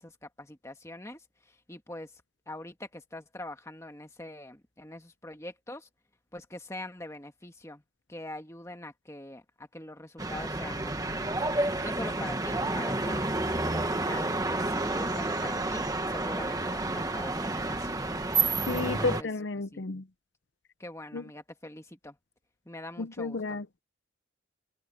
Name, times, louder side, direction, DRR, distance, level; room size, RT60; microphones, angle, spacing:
voice 1, 0.0-2.2 2.5-5.9 6.3-7.8 8.1-11.5 11.8-17.9 18.8-19.3 19.6-19.8 20.8-22.2 22.6-23.6, left 1 dB, 15° left, 1.6 m, -43 dB
sound 1, 10.2-19.2, right 2 dB, 20° right, 1.5 m, -30 dB
voice 2, 18.7-20.0 21.1-21.2 23.0-23.8, left 3 dB, 60° left, 0.7 m, -32 dB
head